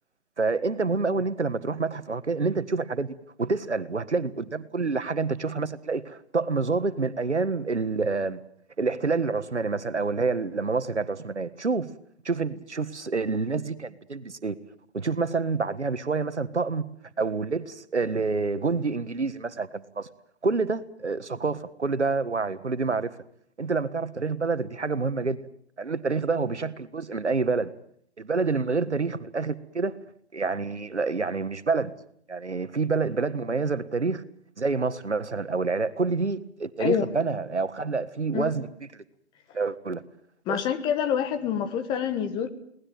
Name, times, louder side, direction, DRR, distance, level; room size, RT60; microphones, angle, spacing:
voice 1, 0.4-8.4 8.8-11.9 12.2-14.5 14.9-16.9 17.2-20.1 20.4-23.1 23.6-25.4 25.8-27.7 28.2-30.0 30.3-31.9 32.3-34.2 34.6-38.7 38.9-39.0 39.5-40.0 40.5-40.6, right 4 dB, 90° right, 1.7 m, -27 dB
voice 2, 40.5-42.5, left 8 dB, 15° left, 1.3 m, -26 dB
22.5 x 19.0 x 9.2 m
figure-of-eight pair, 145°, 33 cm